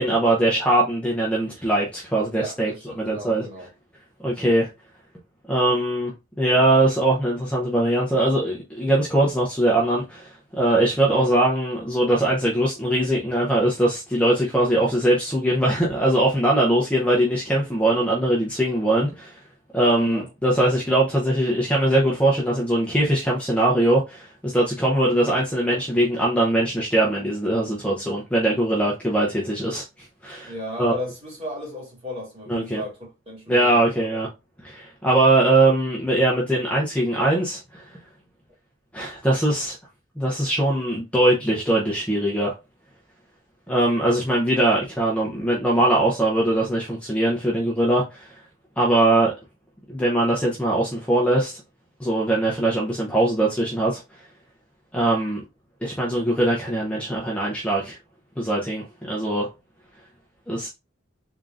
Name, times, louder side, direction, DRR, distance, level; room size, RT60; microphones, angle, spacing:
voice 1, 0.0-2.7 3.0-3.4 4.2-4.7 5.5-19.3 19.7-30.5 30.8-30.9 32.5-32.8 33.5-34.3 34.6-37.8 38.9-39.8 40.2-42.5 43.7-48.3 48.8-49.3 49.9-51.6 52.0-54.0 54.9-55.4 55.8-58.0 58.4-59.5 60.5-60.7, right 1 dB, 5° left, 0.7 m, -21 dB
voice 2, 2.3-3.7 11.0-11.3 19.9-20.3 30.5-34.2, left 1 dB, 30° right, 2.2 m, -35 dB
3.7 x 3.6 x 2.5 m
head